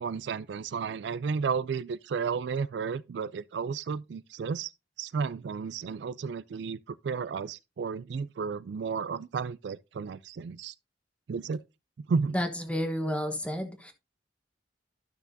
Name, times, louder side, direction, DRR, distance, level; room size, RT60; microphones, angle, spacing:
voice 1, 0.0-4.7 5.0-10.7 11.3-11.6 12.1-12.4, right 5 dB, 70° right, 0.3 m, -32 dB
voice 2, 12.3-13.9, equal, 5° left, 1.1 m, -31 dB
12.0 x 5.8 x 2.7 m
head